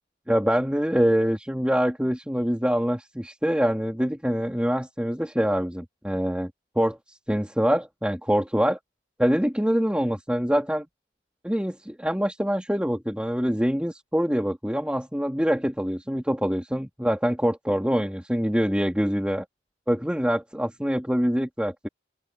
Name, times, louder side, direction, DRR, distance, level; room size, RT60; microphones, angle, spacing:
voice 1, 0.3-6.5 6.8-8.8 9.2-10.8 11.4-19.4 19.9-21.9, equal, 5° right, 2.6 m, -25 dB
open air
head